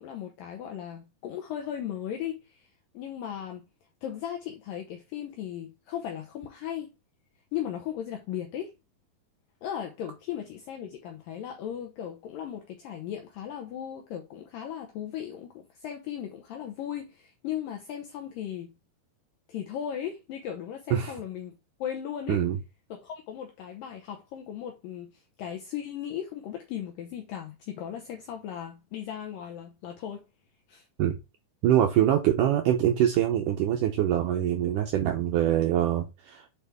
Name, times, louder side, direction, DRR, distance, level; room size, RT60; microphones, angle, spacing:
voice 1, 0.0-2.7 2.9-3.6 4.0-6.9 7.5-8.7 9.6-18.7 19.5-22.4 22.9-30.2 30.7-30.9, left 10 dB, 75° left, 2.2 m, -37 dB
voice 2, 31.6-36.4, right 11 dB, 85° right, 1.8 m, -24 dB
7.8 x 4.4 x 3.4 m
omnidirectional pair, 4.7 m